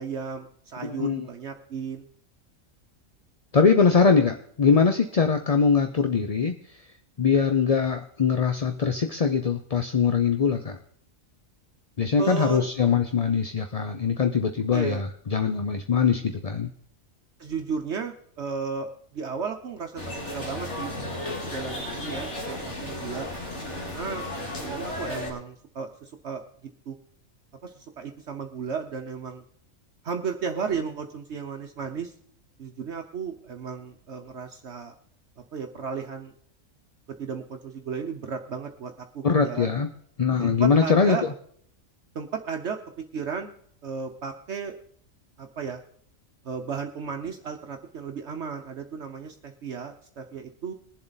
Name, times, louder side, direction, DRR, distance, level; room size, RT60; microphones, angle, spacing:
voice 1, 0.0-2.1 12.2-12.7 14.7-15.0 17.4-23.3 23.9-24.3 24.5-26.4 26.9-27.0 27.6-29.4 30.0-32.1 32.6-34.9 35.5-36.3 37.2-39.7 40.4-41.2 42.1-43.6 43.8-44.7 45.4-45.8 46.4-50.7, right 6 dB, 60° right, 5 dB, 1.1 m, -34 dB
voice 2, 0.8-1.3 3.5-6.8 7.2-10.8 12.0-16.7 39.2-39.9 40.2-41.2, left 5 dB, 40° left, 6 dB, 0.6 m, -22 dB
sound 1, 20.0-25.3, left 1 dB, 60° left, 3.1 m, -34 dB
21.5 x 7.6 x 4.0 m, 0.63 s
omnidirectional pair, 1.4 m